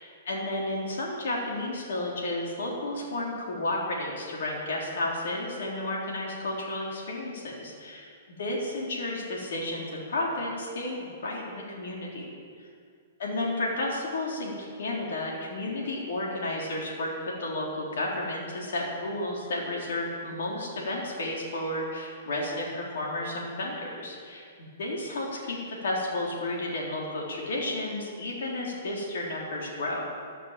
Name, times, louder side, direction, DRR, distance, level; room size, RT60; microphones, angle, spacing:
voice 1, 0.0-8.1 8.4-12.3 13.2-30.0, left 1 dB, 75° left, -3 dB, 3.5 m, -32 dB
13.5 x 11.0 x 7.4 m, 2.2 s
hypercardioid pair, 150°, 0 cm